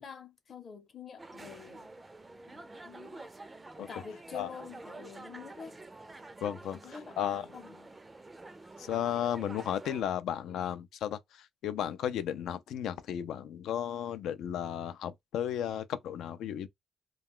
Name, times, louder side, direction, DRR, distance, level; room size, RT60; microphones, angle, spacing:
voice 1, 0.0-1.9 2.5-3.3 3.9-5.8 6.8-7.2 7.5-7.9, left 6 dB, 45° left, 0.7 m, -47 dB
sound 1, 1.2-10.0, right 2 dB, 20° right, 0.4 m, -48 dB
voice 2, 6.4-7.5 8.8-16.7, left 10 dB, 80° left, 0.3 m, -34 dB
2.3 x 2.2 x 3.5 m
cardioid pair, 90°, 0 cm